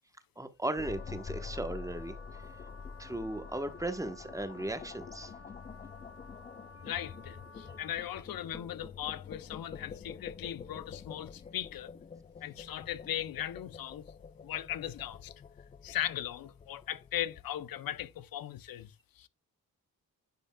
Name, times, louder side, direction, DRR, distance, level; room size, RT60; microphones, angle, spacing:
voice 1, 0.4-2.2 3.0-5.3, right 1 dB, 10° right, 1.0 m, -36 dB
Wind instrument woodwind instrument, 0.7-8.2, left 3 dB, 40° left, 1.5 m, -54 dB
sound 1, 0.8-18.0, left 6 dB, 25° left, 0.3 m, -47 dB
voice 2, 6.8-11.9 12.4-14.0 14.4-15.3 15.8-19.3, left 11 dB, 70° left, 0.7 m, -38 dB
10.5 x 5.2 x 2.3 m
cardioid pair, 90°, 37 cm